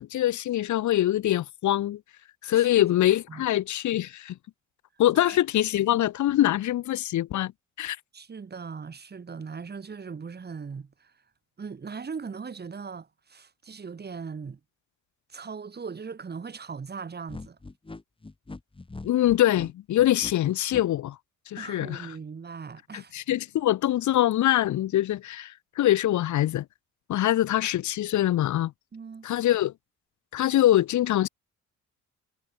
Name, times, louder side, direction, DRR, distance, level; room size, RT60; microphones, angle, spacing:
voice 1, 0.0-2.0 2.4-4.4 5.0-7.5 7.8-8.0 19.0-21.2 21.5-22.1 22.9-26.6 27.1-28.7 29.2-29.7 30.3-31.3, left 13 dB, 70° left, 1.3 m, -24 dB
voice 2, 2.5-2.9 3.3-3.5 5.1-5.4 8.1-11.1 11.6-14.6 15.3-17.6 21.6-23.1 28.9-29.3, right 5 dB, 35° right, 2.6 m, -39 dB
sound 1, 17.3-20.8, left 3 dB, 15° left, 2.7 m, -41 dB
cardioid pair, 90°, 30 cm